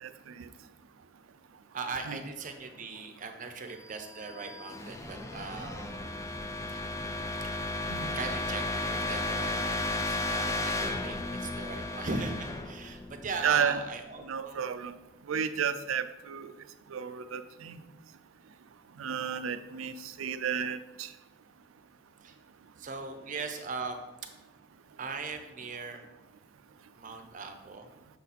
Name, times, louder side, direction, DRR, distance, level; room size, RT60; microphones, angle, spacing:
voice 1, 0.0-0.5 2.1-2.2 7.9-8.2 13.4-13.8 14.2-15.0 15.3-16.5 16.9-17.8 19.0-21.1, right 7 dB, 85° right, 12 dB, 0.4 m, -32 dB
voice 2, 1.7-5.9 6.7-6.8 8.2-14.6 22.2-22.3 22.8-24.0 25.0-26.0 27.0-27.9, right 4 dB, 40° right, 6 dB, 0.6 m, -39 dB
sound 1, 4.0-13.8, left 2 dB, 15° left, 0.4 m, -34 dB
6.5 x 4.0 x 4.1 m, 1.0 s
head